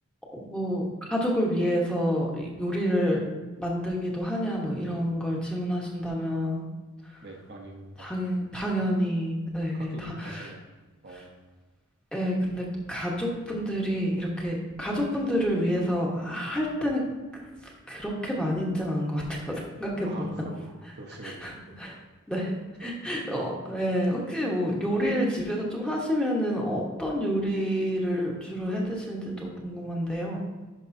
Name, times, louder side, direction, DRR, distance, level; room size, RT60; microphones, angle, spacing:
voice 1, 0.3-3.2 3.6-6.6 8.0-10.5 12.1-17.0 17.3-17.4 17.9-20.3 21.2-22.0 22.3-30.4, equal, 5° left, -3 dB, 1.2 m, -28 dB
voice 2, 7.2-8.1 9.7-10.6 11.0-11.3 20.0-20.7 21.0-21.8 22.8-22.9, right 2 dB, 50° right, 1 dB, 0.9 m, -44 dB
11.0 x 5.3 x 2.7 m, 1.2 s
head